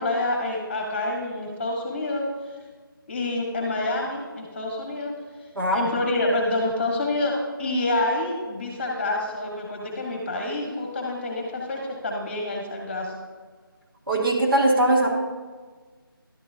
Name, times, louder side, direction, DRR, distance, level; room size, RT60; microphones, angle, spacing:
voice 1, 0.0-2.2 3.1-5.1 5.7-13.1, left 2 dB, 30° left, 0 dB, 1.5 m, -27 dB
voice 2, 5.6-5.9 14.1-15.2, right 1 dB, 70° right, 0 dB, 1.9 m, -21 dB
11.5 x 8.2 x 2.8 m, 1.4 s
figure-of-eight pair, 165°, 12 cm